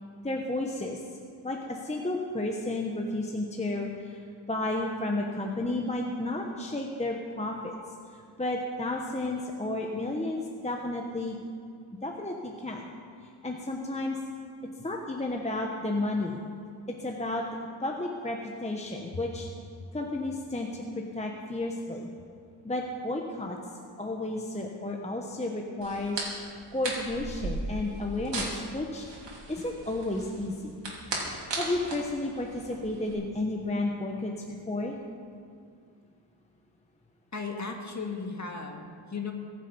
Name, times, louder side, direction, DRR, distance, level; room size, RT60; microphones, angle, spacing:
voice 1, 0.2-1.0 1.4-4.2 4.5-7.7 8.4-11.4 12.0-12.9 13.4-14.2 14.8-16.4 17.0-17.4 17.8-19.5 19.9-22.1 22.6-23.6 24.0-26.2 26.7-29.1 29.5-30.8 31.6-34.3 34.7-35.0, left 2 dB, 15° left, 1 dB, 1.0 m, -32 dB
sound 1, 25.8-33.1, right 2 dB, 65° right, 3.1 m, -37 dB
voice 2, 37.3-39.3, left 4 dB, 35° left, 2 dB, 1.8 m, -36 dB
23.0 x 7.9 x 5.4 m, 2.3 s
wide cardioid pair, 120°, 47 cm